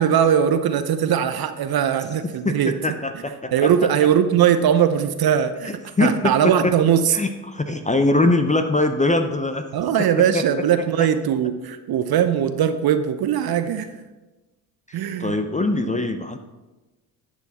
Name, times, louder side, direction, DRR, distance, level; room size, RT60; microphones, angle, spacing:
voice 1, 0.0-2.7 3.5-5.7 6.0-7.2 9.7-13.9 14.9-15.4, right 9 dB, 50° right, 10 dB, 0.7 m, -20 dB
voice 2, 2.4-3.9 5.7-6.3 6.6-6.7 7.1-9.7 15.2-16.4, left 2 dB, 15° left, 8 dB, 0.7 m, -22 dB
10.5 x 6.3 x 4.2 m, 1.1 s
hypercardioid pair, 50°, 48 cm